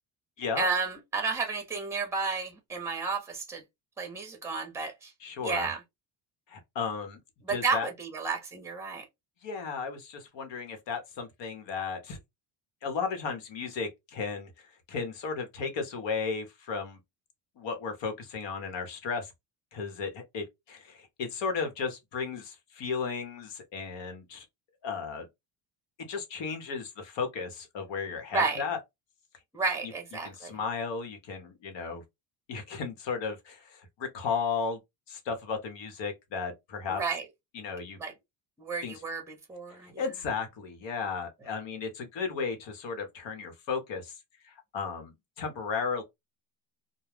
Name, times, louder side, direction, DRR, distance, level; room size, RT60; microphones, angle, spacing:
voice 1, 0.6-3.6 4.0-5.1 5.4-5.8 7.5-9.0 28.3-28.6 29.5-30.5 37.0-37.2 38.0-38.1 38.6-39.9, right 4 dB, 5° right, 0.8 m, -31 dB
voice 2, 5.2-5.7 6.5-7.2 7.5-7.9 9.4-12.2 12.8-14.5 14.9-17.0 17.6-19.3 19.7-24.4 24.8-25.3 26.1-28.8 29.8-29.9 30.2-32.0 32.5-34.8 35.1-37.0 37.5-38.0 38.8-39.0 39.8-44.1 44.4-46.0, left 5 dB, 60° left, 1.1 m, -34 dB
2.3 x 2.1 x 3.3 m
cardioid pair, 100°, 50 cm